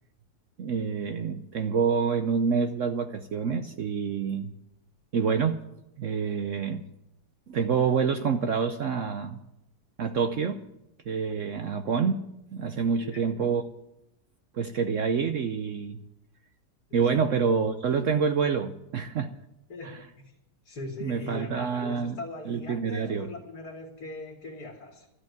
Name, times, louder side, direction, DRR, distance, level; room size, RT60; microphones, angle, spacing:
voice 1, 0.6-4.5 5.1-5.6 6.0-6.8 7.5-9.4 10.0-10.6 11.1-12.1 12.5-13.6 14.5-16.0 16.9-19.3 19.8-20.0 21.0-22.2 22.5-23.3, right 6 dB, 60° right, 1.0 m, -27 dB
voice 2, 12.9-13.3 16.9-17.2 19.7-20.3 20.6-25.1, left 2 dB, 70° left, 2.4 m, -41 dB
13.0 x 8.0 x 9.3 m
omnidirectional pair, 1.7 m